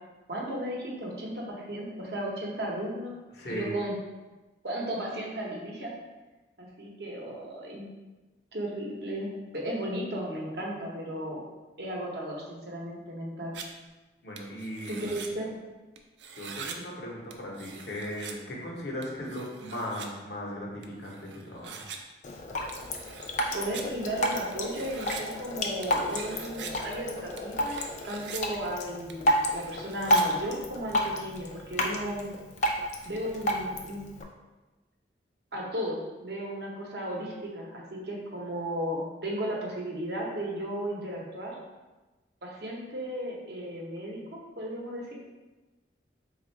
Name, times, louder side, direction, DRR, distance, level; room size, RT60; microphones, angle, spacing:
voice 1, 0.3-3.1 3.4-3.9 4.6-5.9 6.6-7.8 8.5-11.4 11.8-13.5 14.9-15.5 23.5-32.3 33.0-34.0 35.5-41.6 42.4-45.1, right 1 dB, 60° right, -2 dB, 0.8 m, -35 dB
voice 2, 3.3-3.7 14.2-15.1 16.3-21.8, equal, 65° left, -3 dB, 0.9 m, -37 dB
sound 1, 13.5-13.7 14.4-15.3 16.0-16.8 17.3-18.3 19.0-20.1 20.8-22.0 22.7-23.5 23.7-23.8 24.5-25.2 25.8-26.7 27.4-28.4 29.1-30.2, right 7 dB, 75° right, 0.4 m, -43 dB
Drip, 22.2-34.2, equal, 40° left, 0.4 m, -31 dB
3.5 x 2.4 x 4.3 m, 1.2 s
head